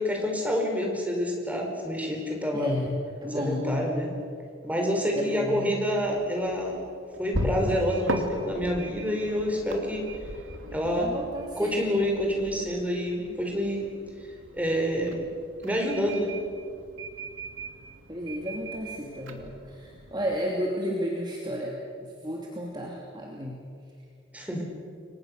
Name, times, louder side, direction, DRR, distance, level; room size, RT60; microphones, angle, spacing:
voice 1, 0.0-2.7 3.3-4.1 4.6-6.8 7.2-10.1 10.7-11.1 11.6-13.9 14.5-15.2 15.6-16.3 24.3-24.6, equal, 10° right, 0 dB, 5.0 m, -27 dB
voice 2, 2.5-3.9 5.2-5.7 11.0-11.9 18.1-23.6, equal, 25° right, -2 dB, 2.9 m, -33 dB
sound 1, 6.0-20.4, right 1 dB, 90° right, 2.8 m, -38 dB
29.5 x 23.5 x 6.8 m, 2.3 s
head